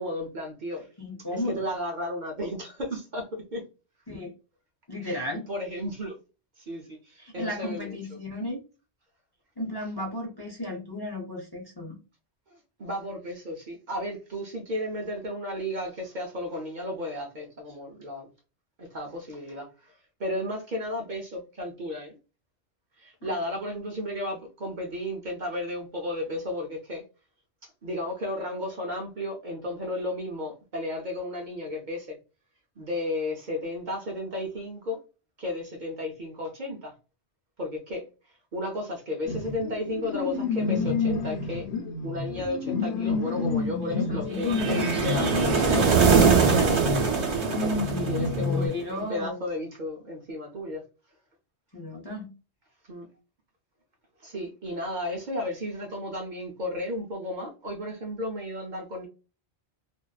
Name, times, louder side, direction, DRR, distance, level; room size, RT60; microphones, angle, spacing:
voice 1, 0.0-0.9 1.3-3.6 5.0-6.2 6.6-7.9 12.5-18.3 18.8-19.9 20.2-22.2 23.0-27.0 27.6-32.2 32.8-35.0 35.4-36.9 37.6-38.1 38.5-41.7 42.0-45.8 46.4-46.7 48.0-50.8 52.8-53.1 54.2-59.1, left 1 dB, 55° right, 0.6 m, -33 dB
voice 2, 1.0-1.6 4.1-4.3 4.9-5.5 7.2-8.6 9.6-12.0 23.2-23.3 43.8-45.7 48.4-49.4 51.7-52.3, left 1 dB, 30° left, 0.5 m, -35 dB
sound 1, 39.2-48.7, left 4 dB, 80° left, 0.9 m, -29 dB
sound 2, 44.4-48.6, right 6 dB, 80° right, 1.1 m, -22 dB
2.5 x 2.2 x 2.2 m
omnidirectional pair, 1.1 m